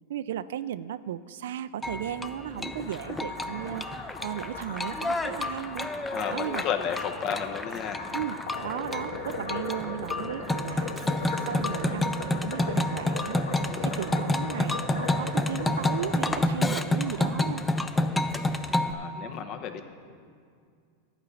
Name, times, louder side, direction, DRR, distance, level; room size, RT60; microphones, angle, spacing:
voice 1, 0.1-3.9 4.2-5.9 6.3-6.6 8.1-8.4 8.6-10.9 11.5-13.4 13.8-17.7, right 10 dB, 80° right, 16 dB, 0.3 m, -35 dB
sound 1, 1.8-18.9, left 2 dB, 10° left, 0.4 m, -30 dB
sound 2, 2.7-16.4, left 3 dB, 85° left, 1.8 m, -38 dB
voice 2, 6.1-8.0 18.9-19.9, left 7 dB, 40° left, 7 dB, 0.8 m, -32 dB
Shatter, 10.9-11.8, right 4 dB, 20° right, 1.0 m, -52 dB
11.5 x 5.0 x 8.4 m, 2.2 s
supercardioid pair, 130°, 0 cm